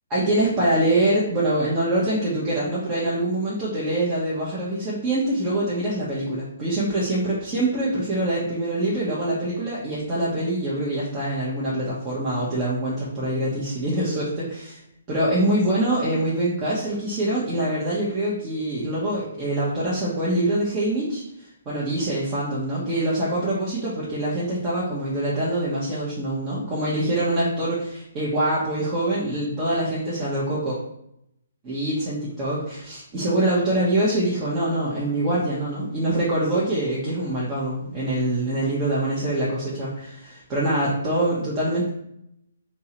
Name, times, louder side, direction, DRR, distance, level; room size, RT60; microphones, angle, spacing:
voice 1, 0.1-14.8 15.1-30.8 31.6-41.9, right 1 dB, 25° right, -8 dB, 1.3 m, -24 dB
3.5 x 3.0 x 4.4 m, 0.79 s
figure-of-eight pair, 130°, 0 cm